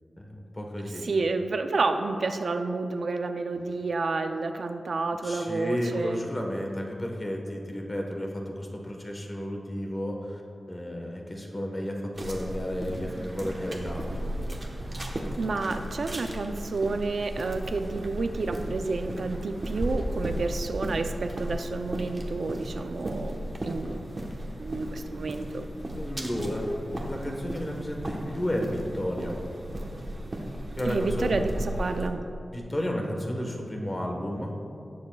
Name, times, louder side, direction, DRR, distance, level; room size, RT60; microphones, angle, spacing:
voice 1, 0.2-1.0 5.2-10.4 10.7-14.3 25.9-29.4 30.8-31.5 32.5-34.5, equal, 20° left, 1 dB, 1.2 m, -32 dB
voice 2, 1.0-6.2 15.1-23.4 23.6-24.0 24.6-25.7 30.8-32.2, right 3 dB, 65° right, 7 dB, 0.4 m, -30 dB
sound 1, 12.1-32.1, right 1 dB, 35° right, 1.1 m, -35 dB
18.0 x 7.0 x 2.3 m, 2.6 s
wide cardioid pair, 135°, 0 cm